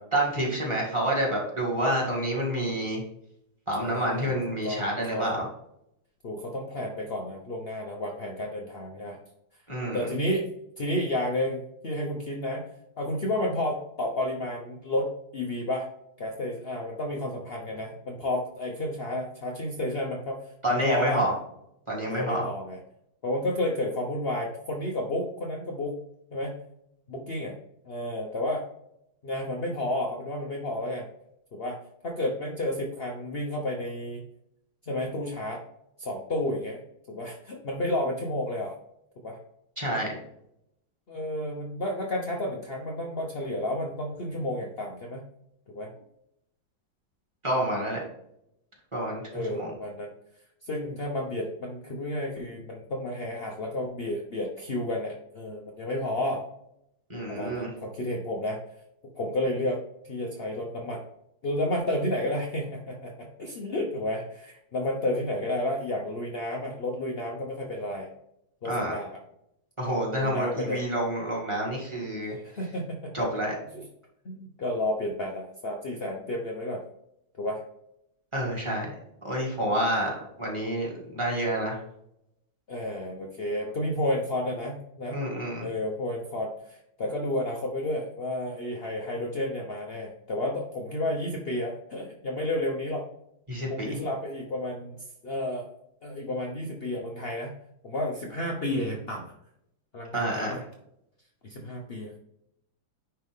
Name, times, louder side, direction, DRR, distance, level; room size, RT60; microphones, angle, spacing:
voice 1, 0.1-3.0 3.7-5.5 9.7-10.1 20.6-21.3 21.9-22.4 39.8-40.2 47.4-48.0 48.9-49.7 57.1-57.7 68.6-69.0 69.8-72.4 73.1-73.5 78.3-79.0 79.2-81.8 85.1-85.7 93.5-94.0 100.1-100.6, right 1 dB, 15° right, -3 dB, 2.1 m, -28 dB
voice 2, 3.8-4.4 4.6-5.4 6.2-9.2 9.9-10.5 10.8-12.7 13.0-15.9 16.2-20.4 20.7-21.2 22.1-22.8 23.2-26.0 26.3-26.6 27.1-27.6 27.9-28.6 29.2-31.1 31.5-31.8 32.0-34.2 34.8-35.6 36.0-36.8 37.1-38.7 39.2-39.4 41.1-45.2 45.7-45.9 49.3-50.1 50.6-56.4 57.3-58.6 59.2-59.8 60.1-61.0 61.4-68.1 68.6-69.2 70.2-70.8 72.3-73.2 73.7-73.8 74.2-76.8 77.4-77.6 79.9-80.1 82.7-85.2 85.6-93.1 93.7-95.0 95.2-95.7 96.0-97.5 97.8-99.3 99.9-100.6 101.4-102.2, left 1 dB, 60° left, 0 dB, 0.6 m, -31 dB
10.0 x 3.4 x 3.6 m, 0.78 s
omnidirectional pair, 2.3 m